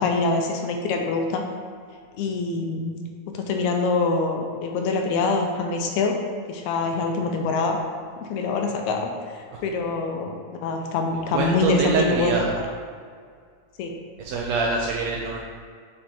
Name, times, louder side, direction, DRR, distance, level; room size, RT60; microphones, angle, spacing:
voice 1, 0.0-1.4 2.2-3.0 3.3-6.2 6.5-7.8 8.2-12.7 13.8-14.0, left 3 dB, 80° left, 3 dB, 1.8 m, -25 dB
voice 2, 11.3-12.6 14.2-15.4, right 4 dB, 80° right, -1 dB, 1.6 m, -25 dB
7.7 x 3.3 x 4.3 m, 2.1 s
omnidirectional pair, 3.5 m